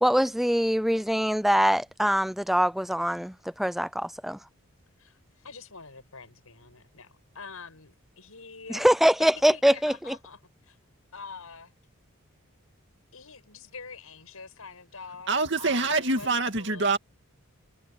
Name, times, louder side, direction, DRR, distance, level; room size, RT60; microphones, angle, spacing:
voice 1, 0.0-4.4 8.7-10.1, equal, ahead, 0.4 m, -23 dB
voice 2, 5.0-8.9 9.2-10.8 11.1-11.7 13.1-17.0, left 5 dB, 80° left, 6.9 m, -45 dB
voice 3, 15.3-17.0, right 3 dB, 55° right, 2.4 m, -25 dB
head